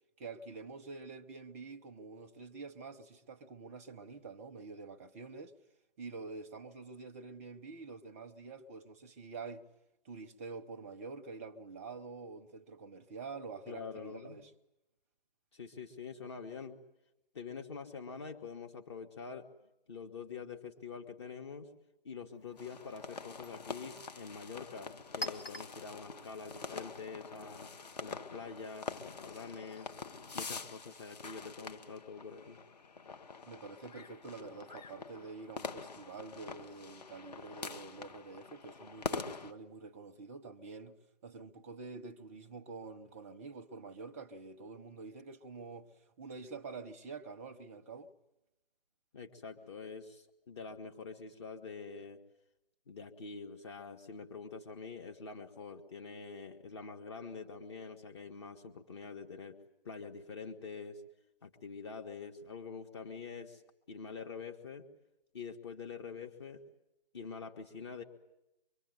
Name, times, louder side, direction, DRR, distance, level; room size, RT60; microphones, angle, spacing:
voice 1, 0.2-5.5 6.0-9.7 10.0-14.5 33.5-48.1, right 4 dB, 15° right, 0.9 m, -47 dB
voice 2, 13.7-14.4 15.5-16.8 17.3-19.5 19.9-21.7 22.0-27.7 28.0-29.9 30.3-32.6 49.1-52.2 52.9-59.6 59.8-61.0 61.4-63.6 63.9-64.9 65.3-66.6 67.1-68.0, left 5 dB, 30° left, 1.8 m, -46 dB
Chink clink, 22.3-27.8, equal, 70° left, 3.3 m, -49 dB
sound 1, 22.6-39.5, left 5 dB, 45° left, 2.1 m, -45 dB
25.0 x 24.0 x 9.5 m
figure-of-eight pair, 155°, 30 cm